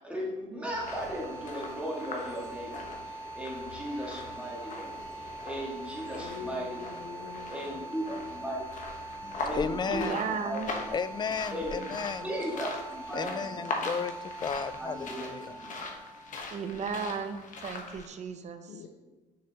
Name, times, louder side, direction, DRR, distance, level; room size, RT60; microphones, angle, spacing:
voice 1, 0.0-7.0 7.5-8.6 9.4-10.1 10.5-10.6 11.5-11.9 12.2-13.7 14.8-15.8, equal, 5° right, -4 dB, 2.0 m, -37 dB
sound 1, 0.6-17.5, right 2 dB, 70° right, 0.9 m, -44 dB
sound 2, 0.7-18.1, left 3 dB, 50° left, 1.3 m, -41 dB
voice 2, 6.0-8.4 8.8-9.2 14.6-14.7 18.7-18.9, left 7 dB, 80° left, 2 dB, 0.7 m, -46 dB
voice 3, 9.2-10.2 10.9-12.5 13.1-15.5, left 6 dB, 25° left, 13 dB, 0.4 m, -34 dB
voice 4, 9.9-10.7 16.5-18.7, right 6 dB, 45° right, 8 dB, 0.7 m, -35 dB
6.8 x 6.4 x 3.0 m, 1.2 s
cardioid pair, 110°, 17 cm